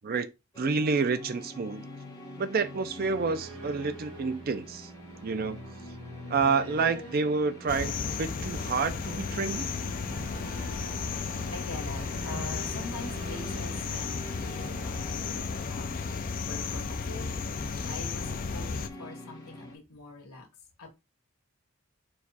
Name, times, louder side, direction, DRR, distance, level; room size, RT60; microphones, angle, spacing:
sound 1, 0.5-19.8, left 1 dB, 20° left, 1.4 m, -46 dB
voice 1, 0.6-1.8 2.4-4.9 5.2-5.6 6.3-9.7, right 4 dB, 45° right, 0.4 m, -29 dB
sound 2, 2.6-15.4, right 2 dB, 70° right, 1.2 m, -47 dB
sound 3, 7.7-18.9, left 5 dB, 40° left, 0.4 m, -34 dB
voice 2, 11.1-15.9 16.5-17.3 17.6-20.5 20.8-20.9, left 2 dB, 90° left, 1.5 m, -44 dB
4.6 x 2.4 x 4.1 m
head